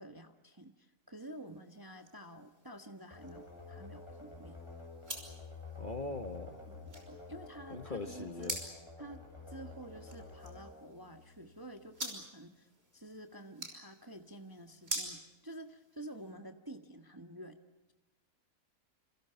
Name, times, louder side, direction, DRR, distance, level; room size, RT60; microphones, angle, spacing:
voice 1, 0.0-4.6 6.7-8.7 9.0-17.6, right 1 dB, 15° right, 6 dB, 1.3 m, -50 dB
sound 1, 1.2-16.3, right 1 dB, 40° right, 5.9 m, -48 dB
sound 2, 3.1-11.8, left 4 dB, 15° left, 7.8 m, -50 dB
voice 2, 5.8-6.6 7.7-8.6, left 3 dB, 30° left, 7 dB, 1.8 m, -41 dB
28.0 x 27.0 x 5.8 m, 1.0 s
omnidirectional pair, 1.6 m